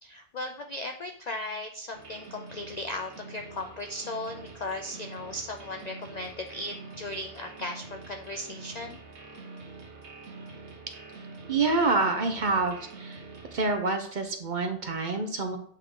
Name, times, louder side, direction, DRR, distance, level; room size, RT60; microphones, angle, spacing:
voice 1, 0.0-9.0, left 2 dB, 60° left, 4 dB, 0.4 m, -37 dB
sound 1, 1.9-13.8, right 3 dB, 65° right, 1.3 m, -46 dB
voice 2, 11.5-13.2 13.5-15.6, right 3 dB, 50° right, 5 dB, 0.7 m, -27 dB
8.3 x 3.6 x 3.6 m, 0.64 s
omnidirectional pair, 1.2 m